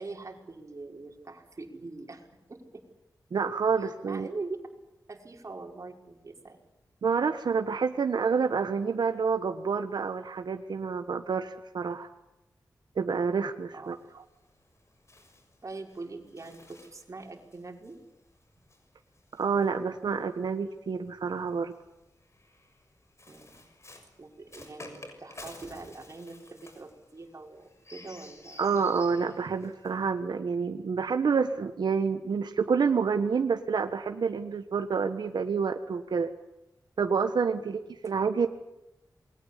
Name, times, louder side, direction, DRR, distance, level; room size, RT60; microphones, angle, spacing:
voice 1, 0.0-2.8 3.8-4.6 5.1-6.7 13.7-14.0 15.6-18.0 23.3-23.7 24.2-28.6 37.6-37.8, right 3 dB, 45° right, 2 dB, 5.6 m, -43 dB
voice 2, 3.3-4.3 7.0-12.1 13.0-14.0 19.4-21.7 28.6-36.3 37.0-38.5, right 5 dB, 90° right, 7 dB, 1.4 m, -28 dB
Bird, 13.8-20.4 21.3-30.1, left 2 dB, 40° left, 6.4 m, -52 dB
28.5 x 22.0 x 8.4 m, 0.94 s
wide cardioid pair, 80°, 7 cm